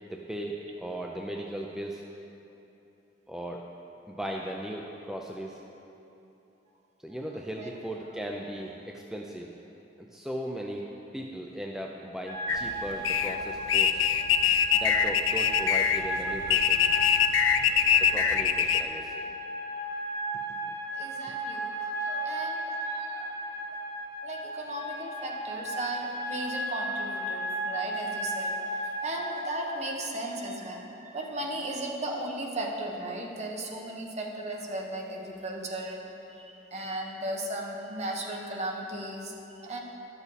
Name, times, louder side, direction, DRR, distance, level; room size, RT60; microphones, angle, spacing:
voice 1, 0.1-2.0 3.3-3.6 4.1-5.6 7.0-9.5 10.1-10.9 11.1-14.0 14.8-16.8 18.0-19.3 20.5-20.8, equal, 5° right, -1 dB, 0.4 m, -37 dB
voice 2, 7.3-7.8 20.9-23.3 24.2-36.0 36.3-39.8, right 1 dB, 35° right, 0 dB, 1.1 m, -36 dB
sound 1, 12.3-29.8, right 1 dB, 60° right, 1.4 m, -34 dB
sound 2, 12.5-18.8, left 8 dB, 80° left, 0.4 m, -24 dB
12.0 x 7.0 x 4.1 m, 3.0 s
head